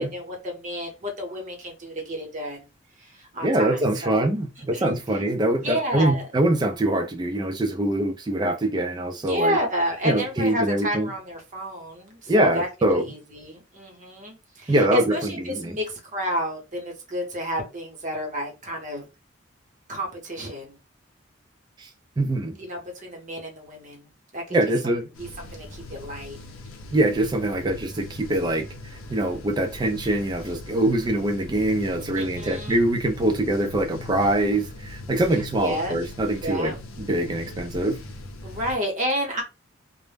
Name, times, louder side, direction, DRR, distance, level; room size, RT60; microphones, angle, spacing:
voice 1, 0.0-2.7 3.0-4.3 4.7-4.9 5.6-6.3 9.2-19.1 19.9-20.8 22.6-24.6 25.2-26.4 32.0-32.8 35.3-36.0 36.4-36.8 38.4-39.4, equal, 35° right, 0.8 m, -30 dB
voice 2, 3.4-9.6 10.0-11.1 12.3-13.0 14.7-15.8 21.8-21.9 22.2-22.5 24.5-25.1 26.9-28.7 29.1-38.0, right 1 dB, 20° right, 0.3 m, -24 dB
sound 1, 25.1-38.8, left 2 dB, 80° left, 0.5 m, -40 dB
2.0 x 2.0 x 3.2 m
head